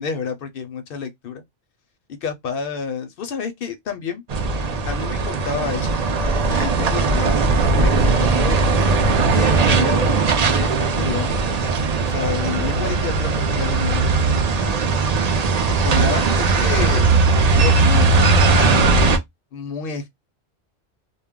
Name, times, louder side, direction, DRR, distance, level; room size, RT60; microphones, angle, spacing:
voice 1, 0.0-1.4 2.1-4.2 4.8-6.0 6.3-8.6 9.3-11.4 12.0-14.9 15.8-17.1 17.6-18.9 19.5-20.1, left 5 dB, 60° left, 0.7 m, -29 dB
sound 1, 4.3-19.2, right 3 dB, 55° right, 0.4 m, -18 dB
2.2 x 2.0 x 3.5 m
omnidirectional pair, 1.2 m